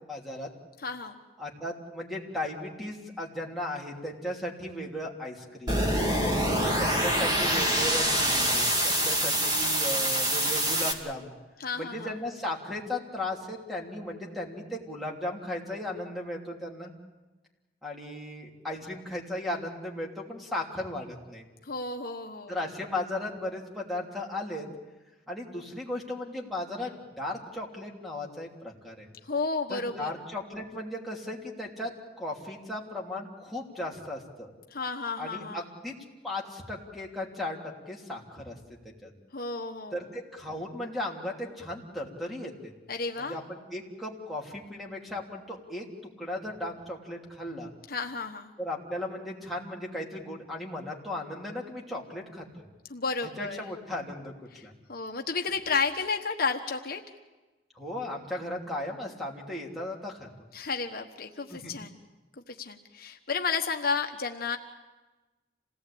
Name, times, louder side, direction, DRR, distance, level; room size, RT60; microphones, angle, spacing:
voice 1, 0.1-0.5 1.4-5.9 6.5-11.3 11.8-16.9 17.8-21.4 22.5-24.7 25.3-29.1 29.7-31.9 32.2-34.5 35.2-35.9 36.2-37.6 37.9-38.6 39.0-39.1 39.9-42.7 43.2-47.7 48.6-52.7 53.4-54.3 54.6-54.7 57.7-60.3 61.5-61.7, left 1 dB, ahead, 0 dB, 3.1 m, -36 dB
voice 2, 0.8-1.2 6.2-6.8 11.6-12.1 21.6-22.6 29.2-30.1 34.7-35.6 39.3-40.0 42.9-43.4 47.9-48.5 52.9-53.6 54.5-57.0 60.5-62.0 62.5-64.6, left 4 dB, 55° left, 4 dB, 1.2 m, -32 dB
sound 1, 5.7-10.9, equal, 25° right, 2.6 m, -25 dB
27.0 x 18.0 x 8.6 m, 1.2 s
head